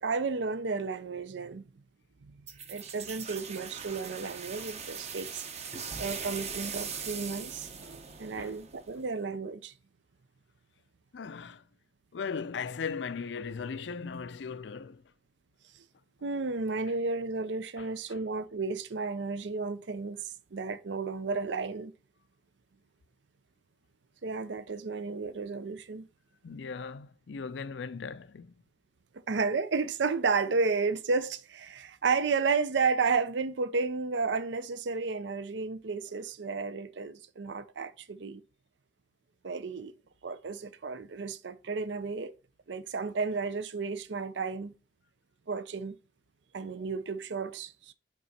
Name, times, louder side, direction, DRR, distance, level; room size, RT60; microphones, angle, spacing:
voice 1, 0.0-1.7 2.3-2.4 2.7-5.7 6.0-9.7 15.7-15.8 16.2-21.9 24.2-26.1 29.3-38.4 39.4-39.9 40.2-42.3 42.7-44.7 45.5-46.0 46.5-47.9, right 4 dB, 80° right, 0.5 m, -32 dB
sound 1, 2.5-9.1, right 6 dB, 35° right, 0.8 m, -40 dB
voice 2, 11.1-11.6 12.1-15.0 17.8-18.2 26.4-28.5, left 5 dB, 80° left, 0.5 m, -38 dB
6.0 x 4.1 x 4.1 m
head